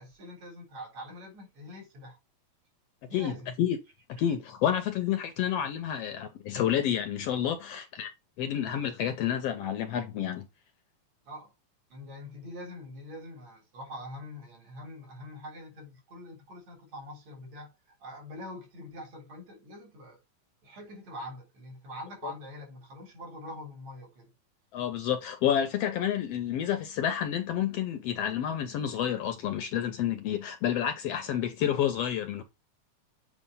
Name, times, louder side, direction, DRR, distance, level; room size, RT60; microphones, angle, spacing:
voice 1, 0.0-2.2 3.1-3.5 4.7-4.8 11.2-11.5 11.9-17.7 18.0-20.2 20.6-24.3, left 1 dB, 65° right, 4.8 m, -44 dB
voice 2, 4.2-8.1 8.4-10.5 22.2-22.3 24.7-32.4, left 10 dB, 70° left, 1.7 m, -29 dB
8.2 x 2.9 x 5.5 m
omnidirectional pair, 3.3 m